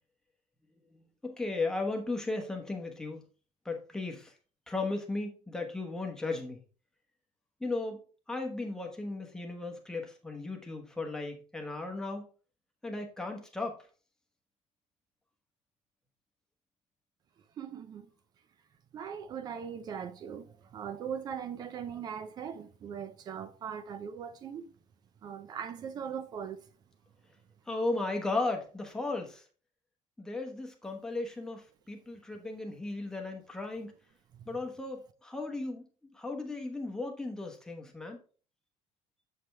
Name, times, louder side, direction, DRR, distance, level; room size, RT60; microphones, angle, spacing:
voice 1, 1.2-3.2 3.6-4.3 4.7-6.6 7.6-8.0 8.3-12.3 12.8-13.8 27.7-29.4 30.2-33.9 34.5-35.8 36.1-38.2, left 3 dB, 5° left, 1.1 m, -35 dB
voice 2, 17.6-18.1 18.9-20.4 20.7-24.7 25.2-26.6 34.3-34.5, right 7 dB, 30° right, 0.7 m, -40 dB
7.6 x 5.1 x 3.4 m
cardioid pair, 170°, 13 cm